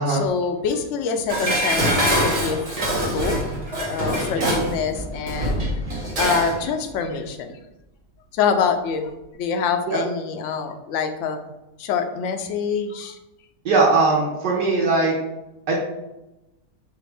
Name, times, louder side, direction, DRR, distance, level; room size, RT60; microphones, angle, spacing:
voice 1, 0.1-2.6 2.8-3.4 3.8-5.6 6.2-7.6 8.3-11.4 11.8-13.2, left 6 dB, 75° left, 6 dB, 0.6 m, -25 dB
Dishes pots and pans, 1.3-6.6 6.9-7.0, equal, 25° right, 1.0 m, -24 dB
voice 2, 13.6-15.1 15.7-15.8, right 3 dB, 75° right, -5 dB, 1.5 m, -20 dB
6.0 x 2.5 x 3.4 m, 0.95 s
omnidirectional pair, 1.8 m